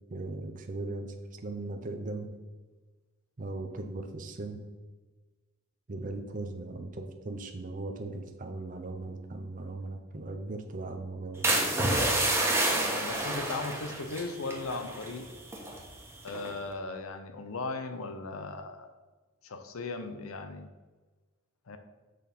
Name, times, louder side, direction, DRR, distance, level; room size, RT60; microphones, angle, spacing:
voice 1, 0.1-2.3 3.4-4.6 5.9-11.5, right 2 dB, 40° right, 5 dB, 0.6 m, -38 dB
sound 1, 11.4-15.2 15.4-15.8 16.3-16.6, right 1 dB, 10° right, 1.2 m, -28 dB
voice 2, 12.8-15.3 16.2-18.9 19.4-20.7 21.7-21.8, left 3 dB, 85° left, 8 dB, 0.7 m, -37 dB
6.5 x 4.2 x 5.3 m, 1.3 s
head